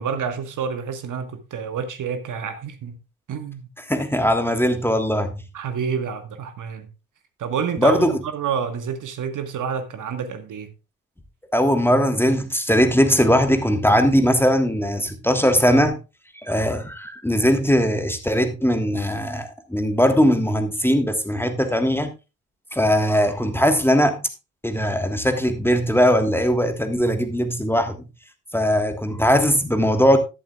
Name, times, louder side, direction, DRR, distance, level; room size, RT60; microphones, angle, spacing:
voice 1, 0.0-3.0 3.3-3.6 5.5-6.9 7.4-10.7, right 7 dB, 45° right, 1.5 m, -28 dB
voice 2, 3.9-5.4 7.8-8.2 11.5-16.0 16.4-22.1 22.7-24.2 24.6-28.0 28.5-30.2, equal, 5° left, 1.5 m, -20 dB
11.5 x 11.5 x 2.4 m
figure-of-eight pair, 50°, 44 cm